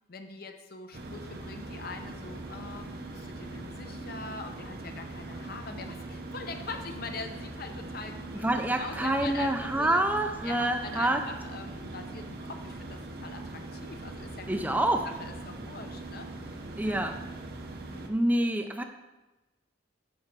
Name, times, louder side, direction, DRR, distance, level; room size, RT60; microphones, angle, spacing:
voice 1, 0.1-10.0 10.4-17.1 17.9-18.2, left 4 dB, 55° left, 6 dB, 0.8 m, -43 dB
sound 1, 0.9-18.1, right 2 dB, 55° right, 0.9 m, -41 dB
voice 2, 8.3-11.2 14.5-15.1 16.8-17.2 18.1-18.8, right 1 dB, 10° right, 5 dB, 0.5 m, -27 dB
8.6 x 4.4 x 6.0 m, 1.1 s
head